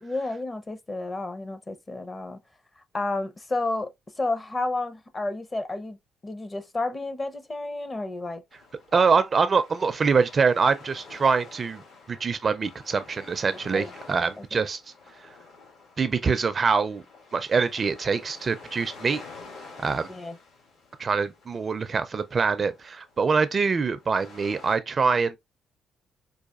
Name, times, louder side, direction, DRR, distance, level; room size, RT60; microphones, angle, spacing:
voice 1, 0.0-2.4 2.9-3.9 4.2-6.0 6.2-8.4 13.7-13.9 14.5-14.6 20.1-20.4, left 2 dB, 25° left, 0.7 m, -31 dB
sound 1, 8.5-24.8, left 3 dB, 75° left, 2.2 m, -49 dB
voice 2, 8.9-11.8 12.1-14.8 16.0-17.0 17.3-19.2 19.8-20.1 21.0-25.4, right 5 dB, 40° right, 0.4 m, -24 dB
4.7 x 2.5 x 2.4 m
cardioid pair, 90°, 0 cm